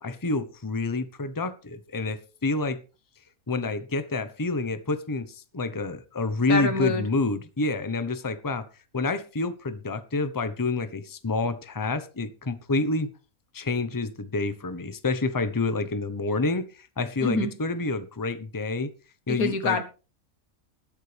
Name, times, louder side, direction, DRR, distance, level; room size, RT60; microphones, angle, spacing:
voice 1, 0.0-2.8 3.5-8.6 8.9-13.1 13.5-18.9 19.3-19.8, left 3 dB, 15° left, 11 dB, 0.9 m, -28 dB
voice 2, 6.5-7.0 17.2-17.5 19.3-19.8, left 3 dB, 85° left, 8 dB, 1.9 m, -25 dB
20.0 x 8.4 x 3.5 m, 0.35 s
omnidirectional pair, 1.5 m